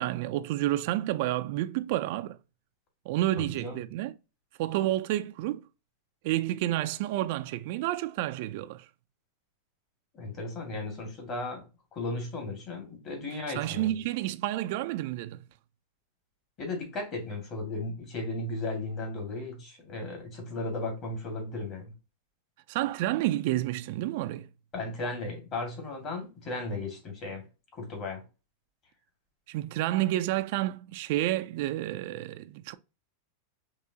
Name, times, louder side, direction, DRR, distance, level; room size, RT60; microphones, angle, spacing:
voice 1, 0.0-2.4 3.1-4.1 4.6-5.6 6.2-8.9 13.5-15.4 22.7-24.5 29.5-32.7, right 15 dB, 55° right, 0.3 m, -30 dB
voice 2, 10.1-11.6 11.9-14.0 16.6-21.9 24.7-27.4 27.7-28.2, left 2 dB, 35° left, 1.8 m, -35 dB
4.8 x 3.0 x 2.8 m
supercardioid pair, 145°, 0 cm